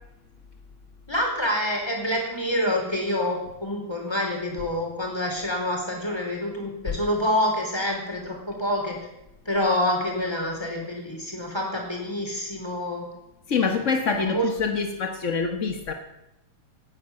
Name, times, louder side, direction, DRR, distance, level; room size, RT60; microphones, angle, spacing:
voice 1, 1.1-9.0 9.5-13.1 13.6-13.8 14.2-14.5, left 1 dB, 10° left, 0 dB, 4.3 m, -27 dB
voice 2, 13.5-15.9, left 5 dB, 75° left, 5 dB, 0.6 m, -25 dB
18.0 x 9.6 x 7.5 m, 0.91 s
omnidirectional pair, 3.4 m